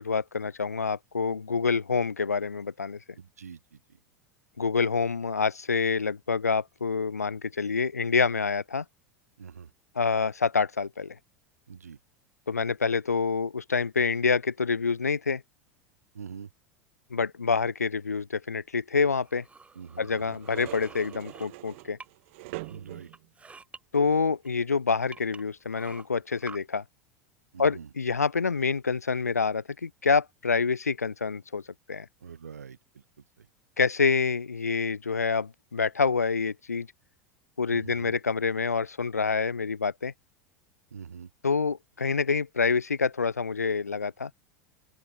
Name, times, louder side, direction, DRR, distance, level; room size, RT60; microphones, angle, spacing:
voice 1, 0.0-3.0 4.6-8.8 9.9-11.1 12.5-15.4 17.1-19.4 20.0-22.0 23.9-26.8 27.6-31.6 31.9-32.1 33.8-36.9 37.6-40.1 41.4-44.3, left 5 dB, 85° left, 1.3 m, -27 dB
voice 2, 3.2-3.8 9.4-9.7 11.7-12.0 16.1-16.5 19.7-20.4 22.7-23.1 27.5-27.9 32.2-33.0 33.4-33.5 37.7-38.1 40.9-41.3, right 7 dB, 75° right, 6.0 m, -44 dB
sound 1, 19.2-22.3 22.6-23.8 24.4-24.5 25.1-26.6, right 4 dB, 15° right, 5.9 m, -49 dB
sound 2, 20.2-23.3 23.9-24.3 25.0-25.2, right 24 dB, 55° right, 5.1 m, -43 dB
open air
figure-of-eight pair, 85°, 8 cm